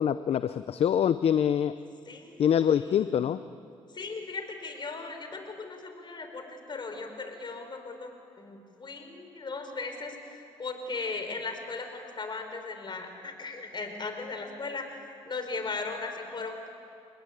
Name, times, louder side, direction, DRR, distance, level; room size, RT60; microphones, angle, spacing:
voice 1, 0.0-1.8 2.4-3.4, left 9 dB, 65° left, 12 dB, 0.7 m, -25 dB
voice 2, 2.1-2.5 2.9-3.1 3.9-15.0 15.3-16.7, left 3 dB, 45° left, 5 dB, 5.1 m, -37 dB
29.5 x 20.0 x 8.8 m, 2.4 s
supercardioid pair, 65°, 11 cm